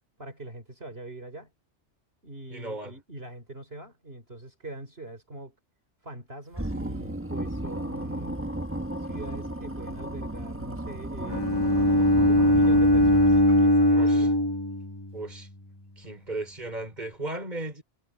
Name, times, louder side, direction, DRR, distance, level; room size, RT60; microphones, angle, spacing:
voice 1, 0.2-1.5 2.2-5.6 6.0-8.4 9.0-11.4 11.9-14.3, right 2 dB, 55° right, 4.6 m, -42 dB
voice 2, 2.5-3.0 13.9-14.3 15.1-15.5 16.0-17.8, right 2 dB, 35° right, 5.1 m, -36 dB
sound 1, 6.5-13.8, right 1 dB, 10° right, 1.3 m, -34 dB
Bowed string instrument, 11.3-15.4, left 1 dB, 20° left, 1.3 m, -21 dB
omnidirectional pair, 1.2 m